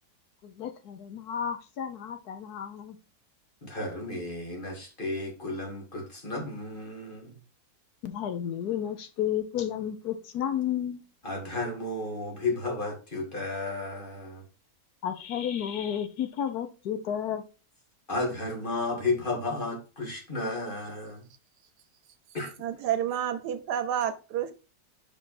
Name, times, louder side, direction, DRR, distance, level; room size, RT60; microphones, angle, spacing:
voice 1, 0.4-3.0 8.0-11.0 15.0-17.4, left 9 dB, 75° left, 1.3 m, -32 dB
voice 2, 3.6-7.4 11.2-14.4 18.1-21.3 22.3-22.5, left 2 dB, 35° left, 1.9 m, -33 dB
voice 3, 22.6-24.5, right 10 dB, 85° right, 1.3 m, -29 dB
5.6 x 4.7 x 4.2 m
omnidirectional pair, 1.7 m